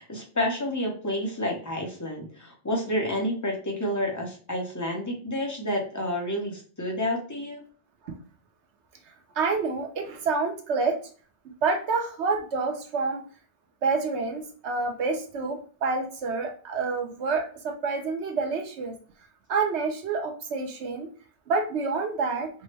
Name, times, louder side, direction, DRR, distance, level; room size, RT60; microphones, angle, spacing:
voice 1, 0.0-7.6, left 1 dB, 15° left, 0 dB, 0.8 m, -29 dB
voice 2, 9.4-11.0 11.4-13.2 13.8-18.9 19.5-21.1 21.5-22.5, right 4 dB, 70° right, 4 dB, 1.0 m, -28 dB
4.4 x 2.1 x 3.2 m, 0.41 s
omnidirectional pair, 1.2 m